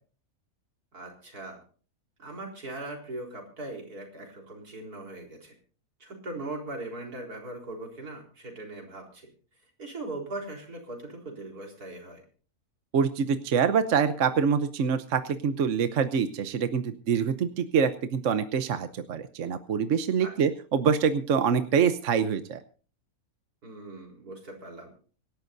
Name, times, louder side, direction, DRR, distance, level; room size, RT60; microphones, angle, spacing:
voice 1, 0.9-1.6 2.2-5.5 6.0-9.3 9.8-12.2 20.2-20.3 23.6-24.9, right 2 dB, 80° right, 1 dB, 4.6 m, -40 dB
voice 2, 12.9-22.6, right 6 dB, 60° right, 10 dB, 1.1 m, -25 dB
25.5 x 11.5 x 2.7 m, 0.40 s
omnidirectional pair, 1.6 m